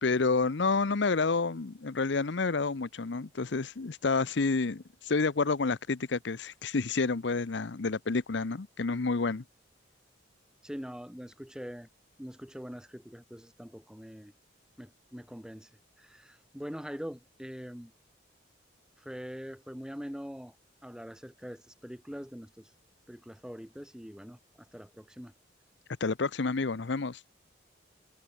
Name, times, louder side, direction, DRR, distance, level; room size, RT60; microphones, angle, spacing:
voice 1, 0.0-9.4 26.0-27.2, left 4 dB, 65° left, 0.7 m, -29 dB
voice 2, 10.6-11.9 12.2-14.3 14.8-15.7 16.0-17.9 19.0-20.5 20.8-22.7 23.1-24.4 24.7-25.3, equal, 5° right, 1.2 m, -43 dB
head